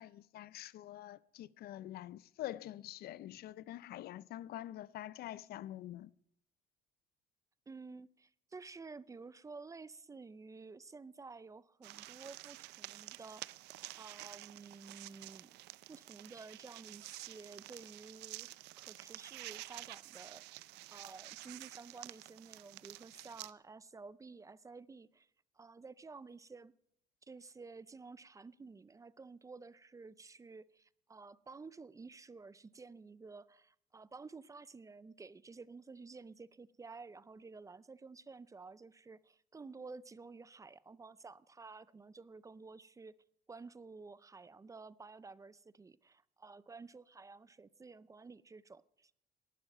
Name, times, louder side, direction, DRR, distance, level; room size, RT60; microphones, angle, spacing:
voice 1, 0.0-6.1, left 13 dB, 65° left, 0.5 m, -46 dB
voice 2, 7.7-13.5 14.0-15.6 15.9-25.3 25.5-26.7 27.2-43.1 43.5-49.2, right 4 dB, 20° right, 0.5 m, -52 dB
sound 1, 11.8-23.5, right 18 dB, 85° right, 0.5 m, -50 dB
18.5 x 12.0 x 5.4 m
cardioid pair, 110°, 17 cm